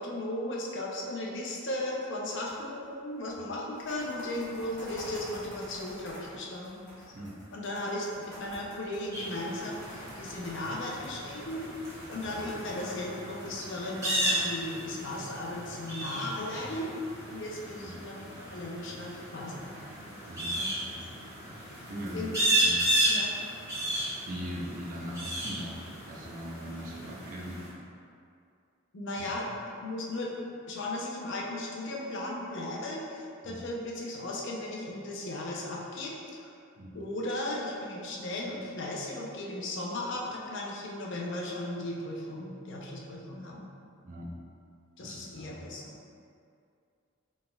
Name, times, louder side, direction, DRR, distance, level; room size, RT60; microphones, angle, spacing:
voice 1, 0.0-7.1 7.5-16.9 17.3-18.2 18.5-19.7 20.6-20.7 22.1-22.4 23.0-23.3 28.9-29.5 29.8-30.3 30.7-36.1 36.4-36.5 36.9-43.6 45.0-45.9, left 1 dB, 60° left, -3 dB, 0.6 m, -36 dB
sound 1, 2.5-2.9 3.2-3.3 3.6-16.1, equal, 15° left, 1.3 m, -49 dB
sound 2, 9.1-27.7, right 1 dB, 15° right, 1.2 m, -34 dB
voice 2, 20.3-22.8 24.3-27.6 29.2-29.3 33.4-33.6 36.8-36.9 44.0-44.3 45.0-45.6, equal, 40° right, -3 dB, 0.6 m, -41 dB
4.1 x 3.6 x 2.2 m, 2.4 s
head